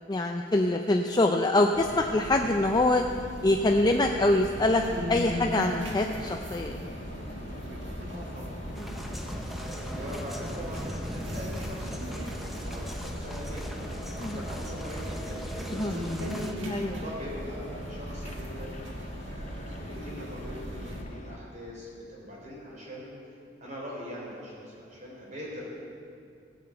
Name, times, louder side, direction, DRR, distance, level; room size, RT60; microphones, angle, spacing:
voice 1, 0.1-3.0 3.4-4.8 5.1-6.8 14.2-14.4 15.8-15.9 16.7-17.0, left 2 dB, 20° left, 3 dB, 0.4 m, -24 dB
sound 1, 1.7-21.0, equal, 70° right, 1.7 m, -38 dB
sound 2, 3.6-21.4, left 1 dB, 40° left, 0.9 m, -45 dB
voice 2, 8.1-8.6 9.1-18.8 19.2-23.1 23.6-25.7, equal, 45° right, -4 dB, 4.0 m, -42 dB
sound 3, 8.7-16.5, equal, ahead, 0.9 m, -38 dB
15.5 x 6.9 x 7.8 m, 2.4 s
head